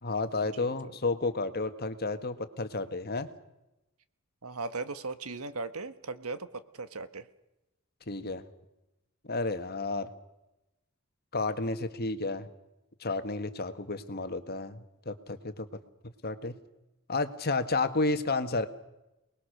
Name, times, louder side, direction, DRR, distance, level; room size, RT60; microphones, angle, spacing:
voice 1, 0.0-3.3 8.1-8.4 9.2-10.1 11.3-12.5 13.0-15.7 16.0-16.6 17.1-18.7, left 3 dB, 45° left, 9 dB, 1.6 m, -31 dB
voice 2, 4.4-7.2, right 3 dB, 75° right, 12 dB, 1.4 m, -38 dB
28.5 x 20.5 x 6.6 m, 0.95 s
head